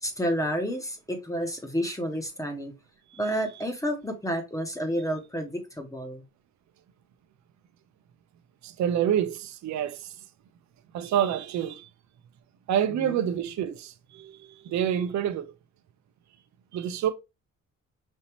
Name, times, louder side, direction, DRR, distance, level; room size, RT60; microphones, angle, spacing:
voice 1, 0.0-2.7 3.2-6.2 13.0-13.3, equal, 10° left, 1.3 m, -30 dB
voice 2, 8.6-10.2 10.9-11.9 12.7-15.5 16.7-17.1, right 9 dB, 65° right, 0.7 m, -28 dB
5.4 x 2.8 x 3.0 m
cardioid pair, 90°, 30 cm